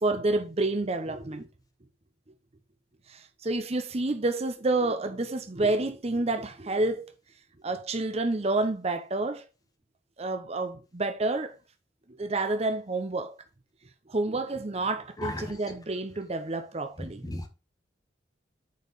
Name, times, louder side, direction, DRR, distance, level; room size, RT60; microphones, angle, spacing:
voice 1, 0.0-1.5 3.1-7.1 7.6-9.5 10.2-11.6 12.2-13.3 14.1-17.2, right 2 dB, 35° right, 0.7 m, -29 dB
voice 2, 15.2-15.5 17.2-17.5, left 1 dB, 20° left, 1.3 m, -34 dB
8.3 x 4.8 x 4.0 m
head